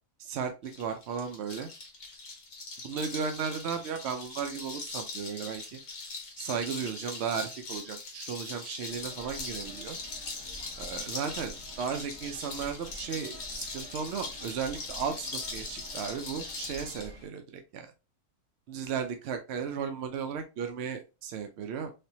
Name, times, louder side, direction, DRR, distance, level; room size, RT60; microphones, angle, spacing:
voice 1, 0.2-1.7 2.8-5.8 6.4-10.0 10.8-17.9 18.7-21.9, right 6 dB, 70° right, 6 dB, 0.6 m, -35 dB
sound 1, 0.6-17.1, left 3 dB, 50° left, 1.2 m, -41 dB
sound 2, 8.9-17.3, equal, 25° right, 0.8 m, -49 dB
3.4 x 2.8 x 2.7 m, 0.29 s
omnidirectional pair, 1.6 m